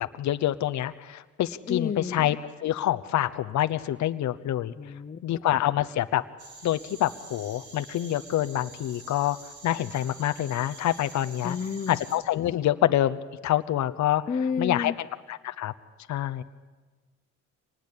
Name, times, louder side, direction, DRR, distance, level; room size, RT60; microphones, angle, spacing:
voice 1, 0.0-4.7 5.2-6.2 6.6-9.4 9.6-11.6 11.9-15.7 16.1-16.4, left 12 dB, 70° left, 10 dB, 0.9 m, -27 dB
voice 2, 1.7-2.3 4.8-5.4 11.4-12.0 14.3-14.9, left 6 dB, 30° left, 11 dB, 0.7 m, -31 dB
sound 1, 6.4-12.2, right 3 dB, 70° right, 4.8 m, -47 dB
25.0 x 19.5 x 8.6 m, 1.3 s
cardioid pair, 90°, 30 cm